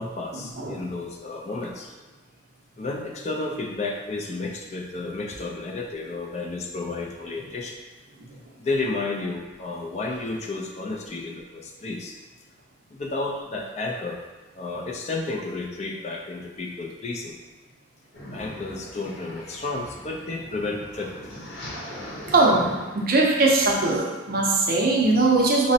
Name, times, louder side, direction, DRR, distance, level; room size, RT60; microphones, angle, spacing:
voice 1, 0.0-1.9 2.8-7.8 8.6-12.1 12.9-14.2 14.5-17.4 18.3-21.3, left 3 dB, 35° left, 0 dB, 0.3 m, -32 dB
sound 1, 18.1-24.0, equal, 65° left, 0.8 m, -41 dB
voice 2, 22.3-25.7, right 2 dB, 50° right, -1 dB, 0.5 m, -20 dB
4.9 x 2.0 x 2.7 m, 1.2 s
head